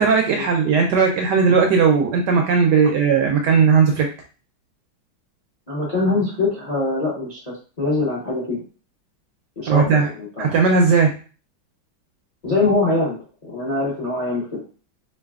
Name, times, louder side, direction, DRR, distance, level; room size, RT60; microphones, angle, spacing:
voice 1, 0.0-4.1 9.7-10.1 10.4-11.1, right 5 dB, 75° right, 2 dB, 1.0 m, -17 dB
voice 2, 5.7-8.6 9.6-10.5 12.4-14.6, left 3 dB, 35° left, -4 dB, 0.6 m, -23 dB
3.9 x 3.1 x 2.3 m, 0.37 s
omnidirectional pair, 2.2 m